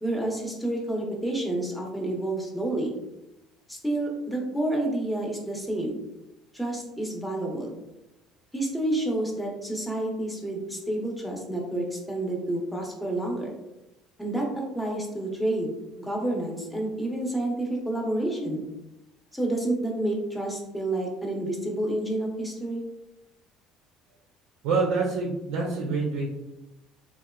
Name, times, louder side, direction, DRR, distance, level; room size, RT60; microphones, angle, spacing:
voice 1, 0.0-3.0 3.7-6.0 6.5-7.7 8.5-13.5 14.2-18.6 19.3-22.8, right 1 dB, 5° left, -1 dB, 0.8 m, -29 dB
voice 2, 24.6-26.3, right 4 dB, 80° right, -1 dB, 0.4 m, -26 dB
2.7 x 2.2 x 2.3 m, 0.94 s
supercardioid pair, 90°, 0 cm